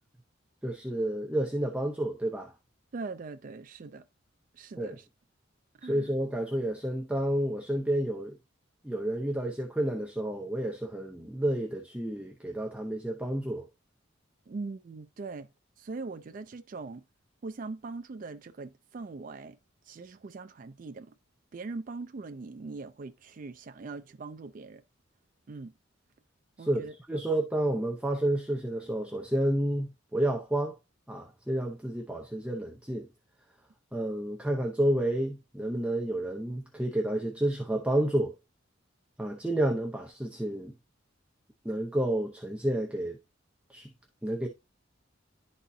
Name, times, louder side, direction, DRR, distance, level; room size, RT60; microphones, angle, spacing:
voice 1, 0.6-2.5 4.8-5.0 5.8-8.4 8.8-13.6 26.6-30.8 31.1-33.1 33.9-38.3 39.2-40.7 41.6-43.2 43.7-43.9 44.2-44.5, right 1 dB, 5° right, 0.6 m, -30 dB
voice 2, 2.9-4.0 4.5-5.1 5.8-6.1 14.5-15.5 15.8-17.0 17.4-19.6 19.9-21.1 21.5-24.8 25.5-25.7 26.6-27.2, right 3 dB, 45° right, 0.4 m, -41 dB
11.0 x 4.2 x 2.6 m
head